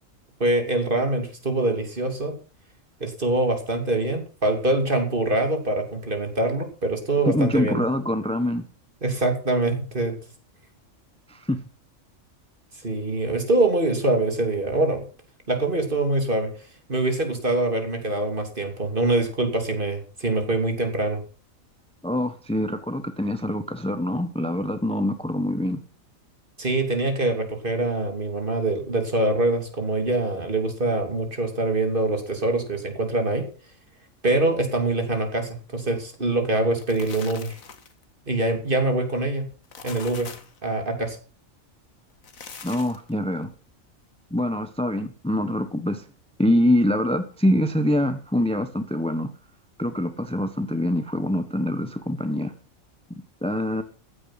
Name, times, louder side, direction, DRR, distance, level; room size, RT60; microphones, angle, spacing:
voice 1, 0.4-2.3 3.0-7.8 9.0-10.1 12.8-15.0 15.5-16.5 16.9-21.2 26.6-33.5 34.2-37.6 38.3-39.5 39.8-40.3 40.6-41.2, right 2 dB, 40° right, 3.1 m, -24 dB
voice 2, 7.2-8.6 11.3-11.6 22.0-25.8 42.6-43.5 44.3-46.0 46.4-49.3 49.8-52.5 53.4-53.8, left 1 dB, 5° left, 1.0 m, -24 dB
sound 1, 36.6-38.0 39.5-40.6 42.1-43.1, left 5 dB, 80° left, 2.0 m, -42 dB
15.0 x 10.0 x 5.8 m
omnidirectional pair, 1.4 m